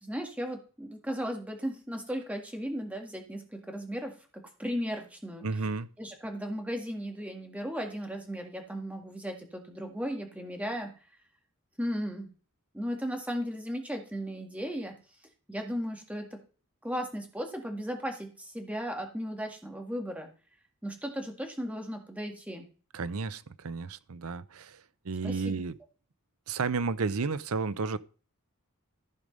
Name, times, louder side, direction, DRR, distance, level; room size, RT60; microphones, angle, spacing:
voice 1, 0.0-4.1 4.6-5.4 6.0-10.9 11.8-12.3 12.7-14.9 15.5-16.4 16.8-20.3 20.8-22.7 25.2-25.6, equal, 5° right, 1.9 m, -36 dB
voice 2, 5.4-5.9 22.9-25.7 26.5-28.0, right 4 dB, 75° right, 0.7 m, -32 dB
14.5 x 5.1 x 5.3 m
head